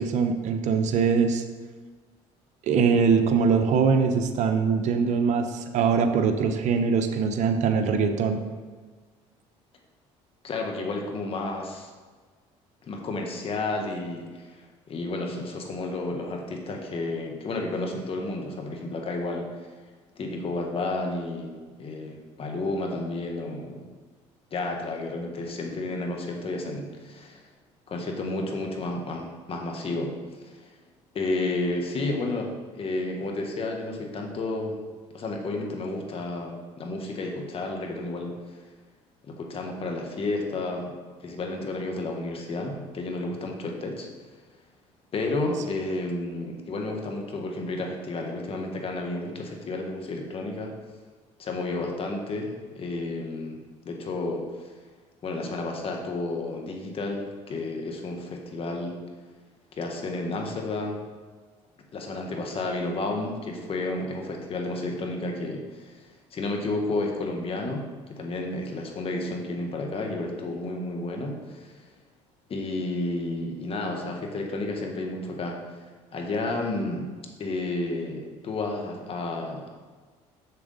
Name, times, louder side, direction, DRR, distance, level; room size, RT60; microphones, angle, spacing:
voice 1, 0.0-1.4 2.7-8.4, right 5 dB, 65° right, 7 dB, 0.9 m, -22 dB
voice 2, 10.4-11.9 12.8-19.7 20.2-23.8 24.5-27.4 27.9-30.7 31.1-34.8 35.1-38.6 39.2-40.9 41.2-44.1 45.1-50.7 51.4-54.7 55.2-59.0 59.7-61.0 61.9-71.8 72.5-77.1 77.4-79.8, left 2 dB, 45° left, 2 dB, 1.6 m, -31 dB
7.0 x 7.0 x 4.0 m, 1.4 s
supercardioid pair, 90°, 13 cm